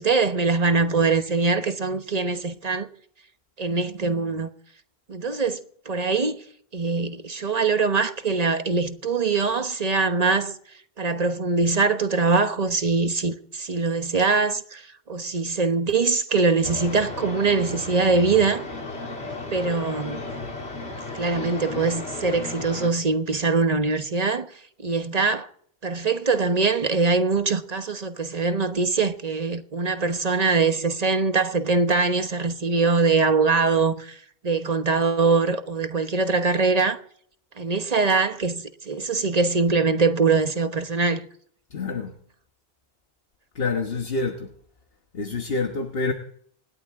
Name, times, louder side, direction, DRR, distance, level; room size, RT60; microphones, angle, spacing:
voice 1, 0.0-2.9 3.6-4.5 5.1-6.4 6.7-10.5 11.0-18.6 19.5-20.2 21.1-25.5 25.8-37.0 37.6-41.3, right 4 dB, 40° right, 1.2 m, -23 dB
sound 1, 16.6-22.9, left 2 dB, 85° left, 2.9 m, -34 dB
voice 2, 41.7-42.2 43.5-44.5 45.1-46.1, left 4 dB, 65° left, 1.5 m, -27 dB
27.0 x 11.5 x 3.7 m
omnidirectional pair, 1.0 m